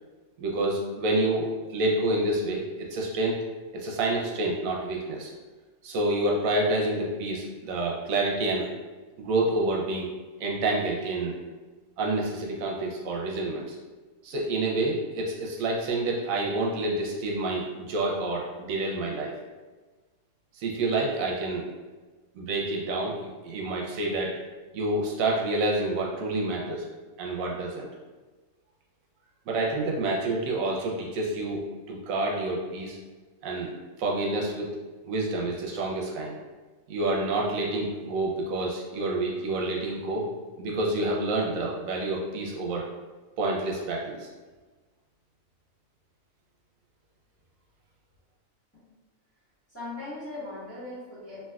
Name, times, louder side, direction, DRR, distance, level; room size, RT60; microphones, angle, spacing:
voice 1, 0.4-3.4 3.7-5.3 5.8-8.7 9.2-10.1 10.4-11.4 12.0-13.8 14.2-19.3 20.6-21.6 22.3-24.3 24.7-26.9 27.2-27.9 29.5-33.0 33.4-33.7 34.0-34.7 35.0-36.3 36.9-40.3 40.6-42.8 43.4-44.3, right 2 dB, 85° right, -2 dB, 1.0 m, -28 dB
voice 2, 49.7-51.5, left 2 dB, 10° left, -13 dB, 1.3 m, -39 dB
3.3 x 2.7 x 2.3 m, 1.3 s
omnidirectional pair, 1.4 m